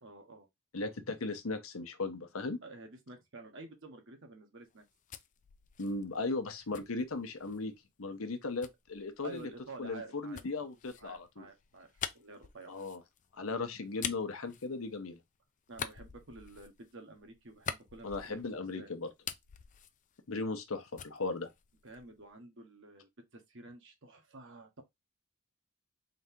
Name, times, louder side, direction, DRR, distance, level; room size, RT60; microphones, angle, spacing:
voice 1, 0.0-0.5 2.6-4.8 9.2-10.4 11.0-12.7 15.7-18.9 21.8-24.8, right 2 dB, 60° right, 1.2 m, -50 dB
voice 2, 0.7-2.6 5.8-9.5 9.8-11.5 12.7-13.0 13.3-15.2 18.0-19.1 20.3-21.5, left 3 dB, 75° left, 0.8 m, -37 dB
sound 1, 4.7-7.7 8.6-15.3 15.7-18.7 19.0-20.7 21.0-22.3, left 8 dB, 35° left, 0.4 m, -45 dB
3.9 x 2.8 x 3.5 m
head